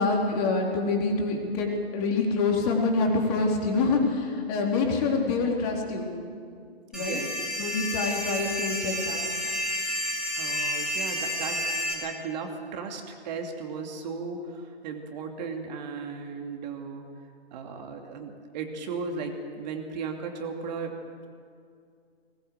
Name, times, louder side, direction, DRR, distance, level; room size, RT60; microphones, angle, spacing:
voice 1, 0.0-6.1 6.9-7.2 7.6-9.2, left 3 dB, 35° left, 0 dB, 4.0 m, -26 dB
sound 1, 6.9-11.9, equal, ahead, 4.3 m, -30 dB
voice 2, 6.9-7.4 10.4-11.6 11.9-17.0 17.5-21.0, right 5 dB, 45° right, 3 dB, 2.7 m, -36 dB
20.5 x 19.5 x 8.0 m, 2.3 s
hypercardioid pair, 130°, 31 cm